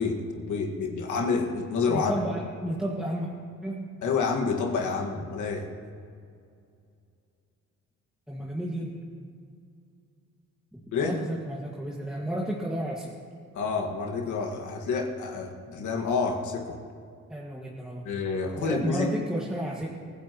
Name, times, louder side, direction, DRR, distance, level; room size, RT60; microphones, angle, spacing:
voice 1, 0.0-2.1 4.0-5.7 10.9-11.2 13.5-16.8 18.0-19.1, left 4 dB, 75° left, 1 dB, 1.8 m, -28 dB
voice 2, 1.9-3.3 3.6-3.9 8.3-9.3 10.7-13.2 17.3-18.1 18.6-19.9, equal, 5° right, -4 dB, 1.8 m, -32 dB
23.5 x 14.5 x 3.0 m, 2.3 s
cardioid pair, 90°, 30 cm